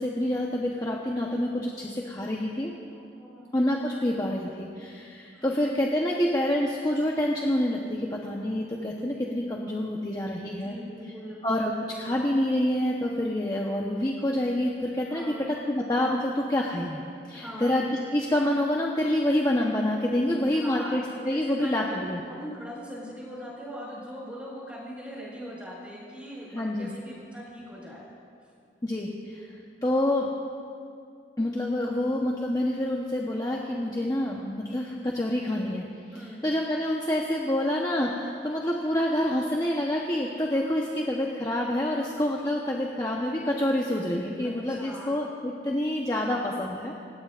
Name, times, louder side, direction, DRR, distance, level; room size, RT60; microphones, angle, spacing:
voice 1, 0.0-2.7 3.5-10.8 11.4-17.0 17.3-17.9 18.1-22.2 26.5-26.9 28.8-29.5 29.8-30.3 31.4-35.8 36.1-46.9, left 1 dB, 20° left, -2 dB, 0.9 m, -27 dB
voice 2, 2.9-3.5 5.3-5.6 10.6-11.4 15.1-15.5 17.3-17.7 20.5-21.0 21.3-22.0 22.3-28.0 28.4-28.5 36.1-36.4 44.4-45.2, equal, 5° right, -5 dB, 5.0 m, -41 dB
27.5 x 17.0 x 2.5 m, 2.4 s
head